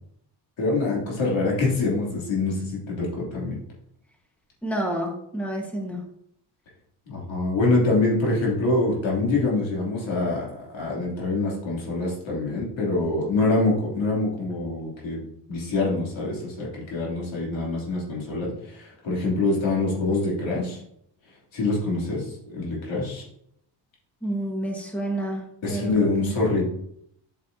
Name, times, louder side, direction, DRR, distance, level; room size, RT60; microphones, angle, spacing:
voice 1, 0.6-3.5 7.1-15.2 15.5-20.8 21.5-23.2 25.6-26.7, left 2 dB, 90° left, -4 dB, 3.0 m, -25 dB
voice 2, 4.6-6.0 24.2-26.3, right 1 dB, 5° left, 1 dB, 1.3 m, -29 dB
8.3 x 6.5 x 2.7 m, 0.74 s
cardioid pair, 105°, 45 cm